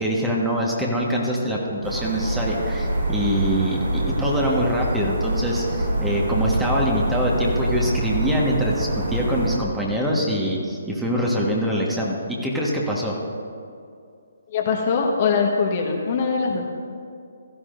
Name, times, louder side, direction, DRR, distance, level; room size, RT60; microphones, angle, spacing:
voice 1, 0.0-13.1, equal, 5° right, -3 dB, 1.5 m, -24 dB
sound 1, 1.8-9.6, right 1 dB, 65° right, 2.4 m, -25 dB
voice 2, 14.5-16.7, left 5 dB, 40° left, 1 dB, 1.4 m, -22 dB
16.5 x 13.5 x 2.6 m, 2.4 s
figure-of-eight pair, 140°, 0 cm